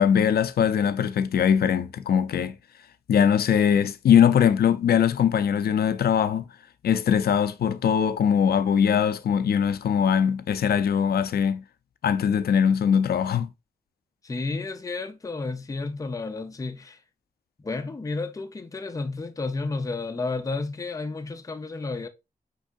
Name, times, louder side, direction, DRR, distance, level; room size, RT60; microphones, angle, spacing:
voice 1, 0.0-2.6 3.1-6.4 6.8-11.6 12.0-13.5, left 8 dB, 85° left, 0.4 m, -21 dB
voice 2, 14.2-17.0 17.6-22.1, left 3 dB, 20° left, 0.5 m, -31 dB
5.3 x 3.5 x 2.4 m
wide cardioid pair, 160°, 16 cm